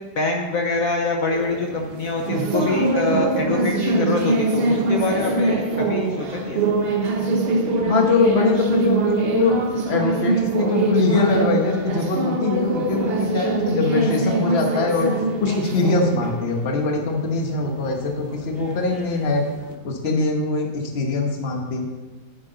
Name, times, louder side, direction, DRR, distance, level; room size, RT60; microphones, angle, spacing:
voice 1, 0.1-6.7 18.8-19.3, left 3 dB, 55° left, 1 dB, 1.0 m, -25 dB
sound 1, 1.3-19.7, right 3 dB, 55° right, 0.6 m, -24 dB
voice 2, 7.8-9.6 9.9-15.1 15.4-19.5 19.8-21.8, left 4 dB, 40° left, 2 dB, 1.2 m, -22 dB
9.8 x 8.0 x 3.9 m, 1.2 s
omnidirectional pair, 2.1 m